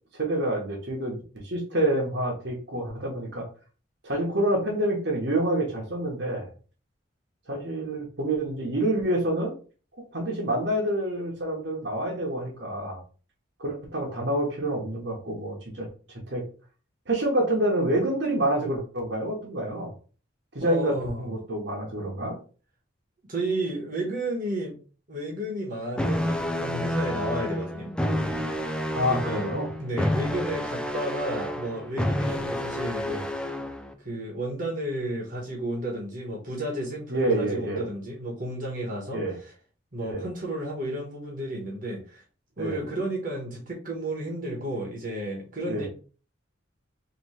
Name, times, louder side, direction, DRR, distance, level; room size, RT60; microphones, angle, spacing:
voice 1, 0.1-1.2 1.4-3.5 4.0-6.5 7.5-9.5 10.1-13.0 13.6-16.4 17.1-19.9 20.5-22.4 28.9-29.7 33.0-33.2 37.1-37.8 39.1-39.3 40.0-40.3 42.6-42.8 45.7-45.9, right 1 dB, 60° right, -1 dB, 1.1 m, -27 dB
voice 2, 20.6-21.3 23.3-24.8 25.1-27.9 29.1-29.5 29.8-33.1 34.0-39.5 39.9-42.2 42.6-45.9, right 1 dB, 40° right, -2 dB, 1.2 m, -32 dB
sound 1, 26.0-33.9, left 1 dB, 5° left, 0.3 m, -29 dB
3.1 x 3.0 x 4.2 m, 0.38 s
head